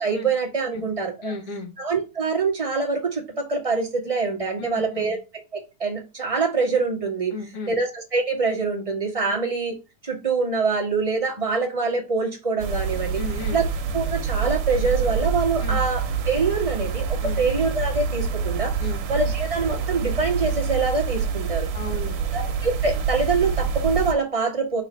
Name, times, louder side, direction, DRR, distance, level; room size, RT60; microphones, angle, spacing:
voice 1, 0.0-1.3 1.8-5.2 5.5-7.3 7.7-9.8 10.0-13.2 13.5-13.7 13.9-18.7 19.1-21.7 22.3-24.8, right 4 dB, 30° right, -2 dB, 0.6 m, -25 dB
voice 2, 1.2-1.7 4.6-5.1 7.3-7.7 9.3-9.4 13.2-13.6 15.6-15.8 17.2-17.4 18.8-19.0 21.7-22.2, left 3 dB, 55° left, -1 dB, 2.2 m, -34 dB
sound 1, 12.6-24.1, right 6 dB, 70° right, 1.9 m, -26 dB
4.9 x 4.1 x 5.2 m, 0.28 s
omnidirectional pair, 3.4 m